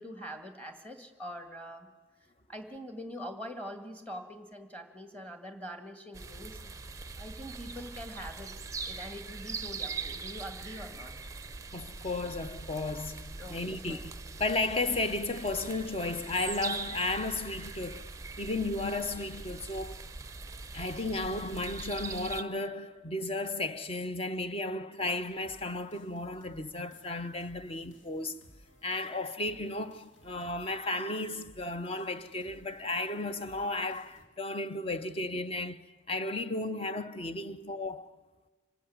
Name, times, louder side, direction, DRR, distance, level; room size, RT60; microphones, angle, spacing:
voice 1, 0.0-1.9 2.5-6.6 7.2-8.6 8.9-11.1 13.4-14.0 37.5-37.8, equal, 5° left, 1.9 m, -44 dB
sound 1, 6.1-22.4, right 4 dB, 15° right, 0.6 m, -42 dB
voice 2, 11.7-14.1 14.4-18.1 18.4-20.1 20.7-28.4 28.8-38.2, left 2 dB, 30° left, 0.8 m, -34 dB
sound 2, 25.0-34.3, right 1 dB, 75° left, 2.9 m, -60 dB
25.5 x 14.0 x 9.4 m
head